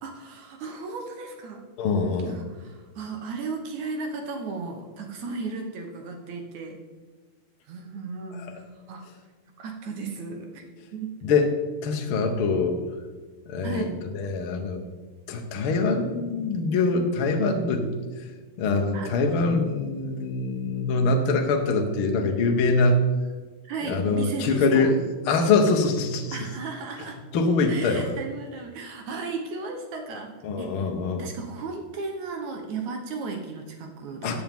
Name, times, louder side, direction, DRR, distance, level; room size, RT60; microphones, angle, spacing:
voice 1, 0.0-1.6 2.3-6.8 7.7-9.0 9.6-11.1 13.6-14.0 18.9-19.1 23.7-24.9 26.3-27.2 27.7-30.3 30.6-30.9 31.2-34.4, right 4 dB, 65° right, 3 dB, 2.2 m, -35 dB
voice 2, 1.8-2.4 11.3-11.5 11.8-12.8 13.5-13.9 14.1-14.8 15.3-17.9 18.2-18.3 18.6-23.0 23.9-24.9 25.3-26.4 27.3-28.1 30.4-31.3 34.2-34.4, left 3 dB, 60° left, 3 dB, 1.4 m, -23 dB
15.0 x 8.8 x 3.6 m, 1.4 s
omnidirectional pair, 3.9 m